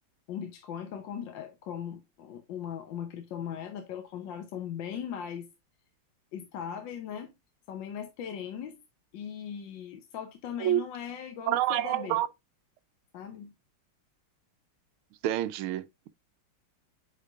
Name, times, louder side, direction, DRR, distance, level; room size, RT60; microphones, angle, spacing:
voice 1, 0.3-5.5 6.3-7.3 7.7-8.8 9.1-12.2 13.1-13.5, left 8 dB, 65° left, 1.5 m, -39 dB
voice 2, 11.5-12.3 15.2-15.8, right 13 dB, 85° right, 1.5 m, -27 dB
8.3 x 5.1 x 2.4 m
omnidirectional pair, 2.3 m